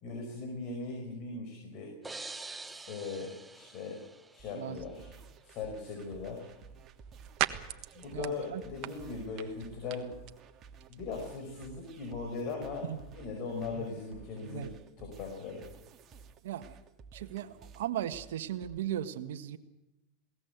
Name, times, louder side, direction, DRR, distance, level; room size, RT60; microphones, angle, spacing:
voice 1, 0.0-2.0 2.6-4.0 4.3-5.1 5.4-6.5 7.9-10.1 10.9-12.9 13.1-14.7 15.0-15.7, left 4 dB, 50° left, 4 dB, 5.3 m, -39 dB
sound 1, 2.0-4.8, right 3 dB, 10° right, 0.8 m, -46 dB
sound 2, 4.4-18.8, right 5 dB, 30° right, 2.0 m, -54 dB
sound 3, 6.2-14.8, right 15 dB, 50° right, 1.4 m, -43 dB
voice 2, 8.1-8.6 12.8-13.0 13.7-13.9 14.4-14.7 16.4-16.8 17.1-19.6, right 11 dB, 75° right, 7 dB, 1.4 m, -37 dB
21.0 x 18.0 x 8.2 m, 0.99 s
hypercardioid pair, 115°, 0 cm